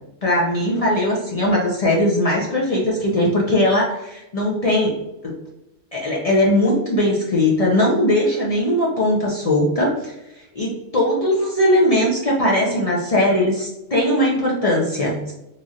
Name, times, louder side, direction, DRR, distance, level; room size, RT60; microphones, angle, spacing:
voice 1, 0.2-5.0 5.2-5.4 5.9-15.3, left 1 dB, 45° left, -4 dB, 0.5 m, -19 dB
3.1 x 2.4 x 2.6 m, 0.91 s
omnidirectional pair, 1.2 m